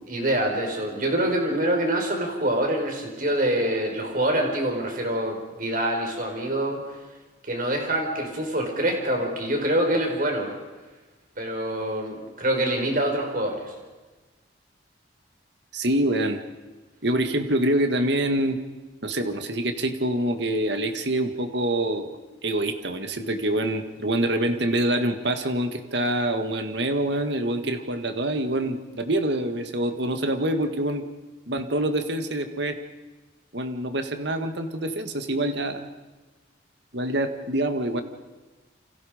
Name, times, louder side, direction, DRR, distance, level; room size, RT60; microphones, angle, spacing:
voice 1, 0.0-6.8 7.4-10.5 11.4-13.7, right 1 dB, 45° right, 2 dB, 5.3 m, -25 dB
voice 2, 15.7-16.4 17.0-18.6 19.0-31.0 31.5-32.8 33.5-35.9 36.9-38.0, right 1 dB, 65° right, 7 dB, 1.9 m, -26 dB
29.5 x 26.5 x 5.3 m, 1.2 s
head